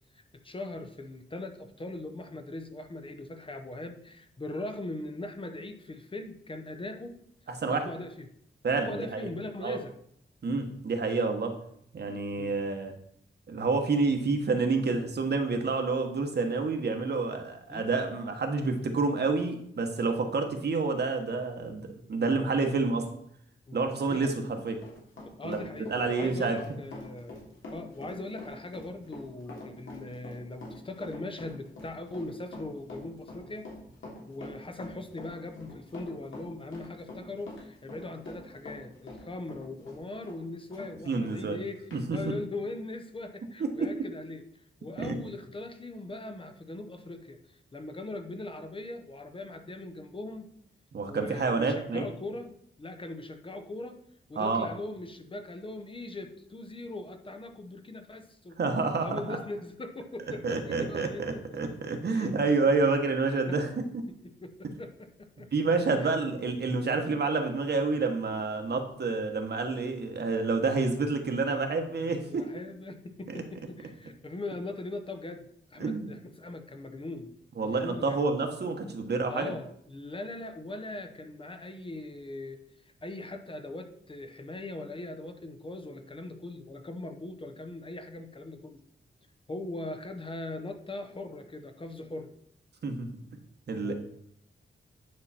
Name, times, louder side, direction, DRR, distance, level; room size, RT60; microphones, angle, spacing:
voice 1, 0.1-7.2 7.7-8.3 8.7-9.9 12.4-12.5 17.7-17.9 23.7-23.8 24.1-24.4 25.2-33.7 34.3-50.5 51.1-52.5 52.8-54.0 54.3-58.6 59.0-61.8 62.1-62.3 63.0-63.1 63.5-63.6 64.2-65.5 66.0-66.1 70.6-70.9 72.0-77.3 77.6-78.2 79.3-82.6 83.0-88.8 89.5-92.3 93.8-93.9, left 2 dB, 25° left, 7 dB, 0.7 m, -40 dB
voice 2, 8.6-9.3 9.6-9.8 10.4-11.5 11.9-12.9 13.5-23.1 23.7-24.8 25.4-26.6 41.1-41.6 41.9-42.2 43.6-44.0 45.0-45.1 50.9-52.1 54.4-54.7 58.6-59.4 60.4-64.0 65.5-72.5 73.3-73.4 75.8-76.1 77.6-79.5 92.8-93.1 93.7-93.9, right 3 dB, 55° right, 5 dB, 1.3 m, -28 dB
Run, 24.4-40.9 41.3-41.4 41.9-42.0, left 2 dB, 80° left, 3.1 m, -45 dB
9.7 x 5.7 x 4.3 m, 0.68 s
wide cardioid pair, 180°, 20 cm